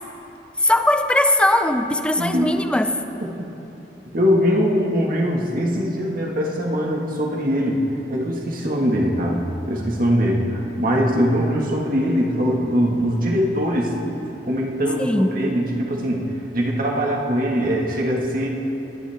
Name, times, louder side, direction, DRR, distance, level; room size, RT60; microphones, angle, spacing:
voice 1, 0.6-2.9 15.0-15.3, left 1 dB, 5° left, 7 dB, 0.6 m, -19 dB
voice 2, 2.2-2.6 3.2-3.5 4.1-7.8 8.1-13.9 14.3-16.3 16.5-18.5, equal, 55° right, -1 dB, 2.0 m, -22 dB
24.0 x 11.0 x 3.6 m, 3.0 s
head